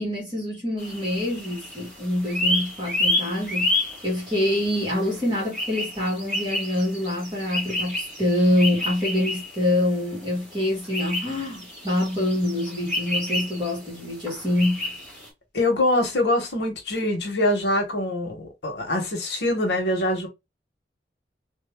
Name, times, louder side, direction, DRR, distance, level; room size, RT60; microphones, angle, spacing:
voice 1, 0.0-14.9, left 1 dB, 25° right, 1.8 m, -25 dB
sound 1, 0.8-15.3, left 1 dB, ahead, 2.2 m, -30 dB
voice 2, 15.5-20.3, left 1 dB, 70° left, 1.1 m, -24 dB
3.2 x 2.5 x 3.5 m
head